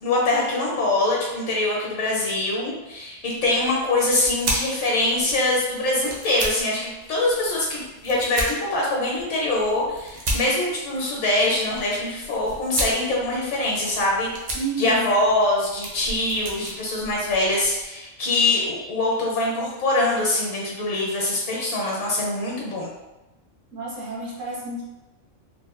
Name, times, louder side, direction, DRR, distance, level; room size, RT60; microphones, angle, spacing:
voice 1, 0.0-14.3 14.8-22.9, left 2 dB, 70° left, -3 dB, 1.0 m, -23 dB
sound 1, 3.4-17.9, right 1 dB, 55° right, 0.5 m, -35 dB
voice 2, 14.5-15.1 23.7-24.8, right 3 dB, 75° right, -5 dB, 1.3 m, -30 dB
3.3 x 2.1 x 2.4 m, 1.0 s
omnidirectional pair, 1.3 m